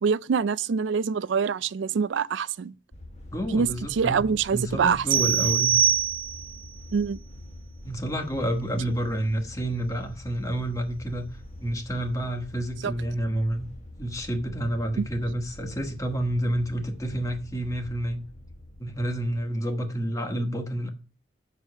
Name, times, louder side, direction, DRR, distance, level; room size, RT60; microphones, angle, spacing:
voice 1, 0.0-2.7 3.5-5.3 6.9-7.2 12.8-12.9, right 6 dB, 70° right, 0.4 m, -25 dB
sound 1, 2.9-19.5, left 1 dB, 35° left, 1.4 m, -44 dB
voice 2, 3.3-5.8 7.8-11.3 11.6-13.7 14.0-18.2 18.8-20.9, right 1 dB, 15° left, 1.3 m, -29 dB
sound 2, 5.1-6.6, right 8 dB, 25° right, 0.6 m, -23 dB
8.9 x 4.9 x 6.5 m
head